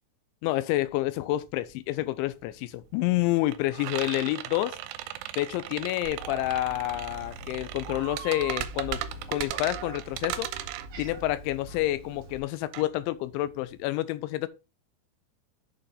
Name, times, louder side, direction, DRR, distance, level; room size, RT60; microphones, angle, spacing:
voice 1, 0.4-4.8 5.4-9.0 9.3-10.5 11.0-14.5, left 16 dB, 80° left, 2.9 m, -28 dB
sound 1, 0.8-0.9 1.2-13.9, right 13 dB, 85° right, 3.1 m, -37 dB
Meow, 6.0-12.4, right 3 dB, 60° right, 2.0 m, -42 dB
7.2 x 6.8 x 3.8 m
omnidirectional pair, 5.5 m